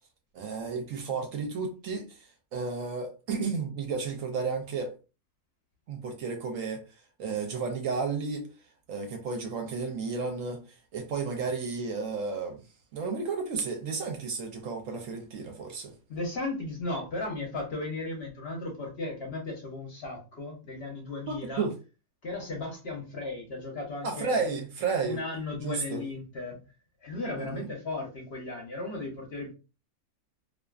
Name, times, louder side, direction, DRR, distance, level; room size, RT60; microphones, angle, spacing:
voice 1, 0.3-4.9 5.9-6.8 7.2-8.5 8.9-12.6 12.9-15.9 21.3-21.7 24.0-25.2 25.6-26.0 27.4-27.7, right 4 dB, 70° right, 0.9 m, -32 dB
voice 2, 16.1-21.7 22.2-24.5 25.0-26.6 27.0-29.5, left 2 dB, 55° left, 0.8 m, -36 dB
2.4 x 2.4 x 2.3 m
omnidirectional pair, 1.6 m